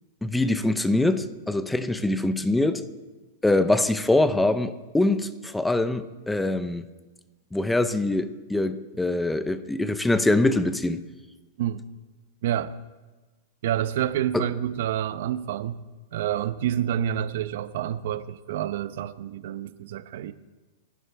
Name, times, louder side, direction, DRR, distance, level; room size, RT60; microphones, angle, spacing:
voice 1, 0.2-2.8 3.4-6.8 7.5-11.0 14.3-14.5, left 2 dB, 5° left, 0.7 m, -23 dB
voice 2, 12.4-12.8 13.6-15.8 16.1-20.3, right 11 dB, 65° right, 0.8 m, -28 dB
29.0 x 11.5 x 3.4 m
supercardioid pair, 150°, 0 cm